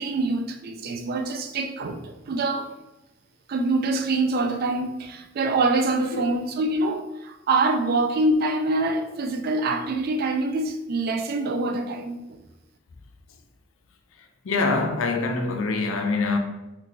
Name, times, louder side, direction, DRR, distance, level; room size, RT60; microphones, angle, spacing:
voice 1, 0.0-2.7 3.5-12.4, right 2 dB, 50° right, 0.3 m, -25 dB
voice 2, 14.4-16.4, left 3 dB, 75° left, 0.5 m, -24 dB
3.8 x 3.0 x 2.2 m
head